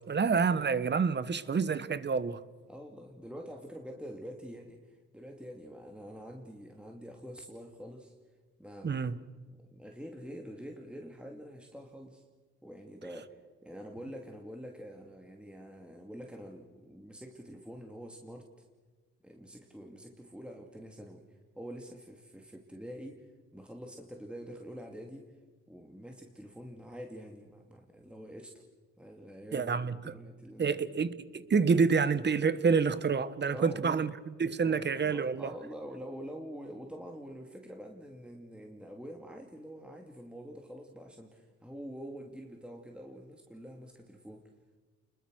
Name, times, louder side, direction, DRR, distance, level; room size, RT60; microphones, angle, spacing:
voice 1, 0.0-2.4 8.8-9.2 29.5-30.1 30.6-35.5, right 5 dB, 35° right, 1.3 m, -28 dB
voice 2, 2.7-8.1 8.6-9.1 9.5-12.2 12.6-18.5 19.2-25.3 25.7-28.6 29.0-31.0 33.5-34.0 34.6-44.4, equal, 5° right, 2.5 m, -46 dB
30.0 x 21.5 x 6.4 m
cardioid pair, 90°, 30 cm